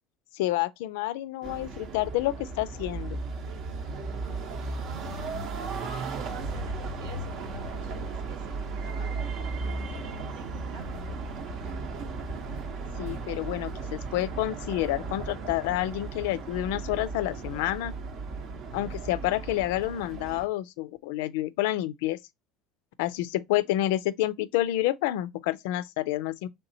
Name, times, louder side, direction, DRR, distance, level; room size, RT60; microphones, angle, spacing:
voice 1, 0.3-3.2 13.0-17.9 18.7-22.2 23.0-26.5, left 15 dB, 75° left, 0.3 m, -29 dB
sound 1, 1.4-20.5, right 3 dB, 60° right, 0.8 m, -35 dB
voice 2, 5.7-6.7 7.0-9.4 9.9-11.0, right 4 dB, 85° right, 1.4 m, -49 dB
3.3 x 2.9 x 2.6 m
hypercardioid pair, 85°, 0 cm